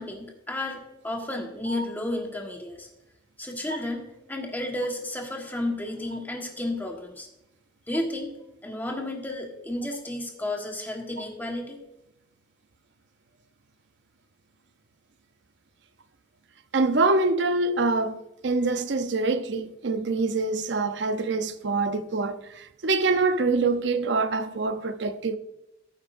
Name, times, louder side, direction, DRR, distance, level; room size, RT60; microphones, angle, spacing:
voice 1, 0.0-2.9 3.4-7.3 7.9-8.3 8.6-11.8, left 1 dB, 10° left, 1.5 m, -32 dB
voice 2, 16.7-25.4, right 3 dB, 70° right, 0.7 m, -25 dB
14.5 x 8.4 x 2.6 m
head